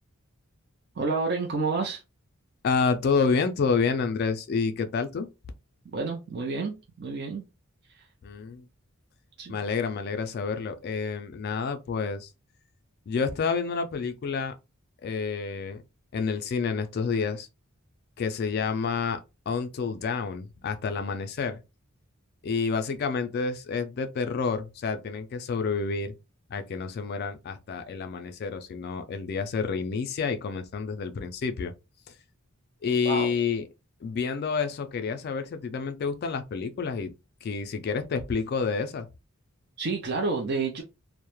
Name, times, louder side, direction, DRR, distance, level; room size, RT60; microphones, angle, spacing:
voice 1, 1.0-2.0 5.9-7.5 7.9-8.1 9.4-9.6 33.0-33.3 39.8-40.8, right 3 dB, 50° right, 0.5 m, -29 dB
voice 2, 2.6-5.3 8.2-8.6 9.5-12.3 13.1-14.5 15.0-15.8 16.1-17.5 18.2-21.6 22.4-26.1 26.5-31.7 32.8-33.6 34.0-37.1 37.4-39.1, left 5 dB, 45° left, 0.3 m, -29 dB
2.2 x 2.0 x 2.9 m
head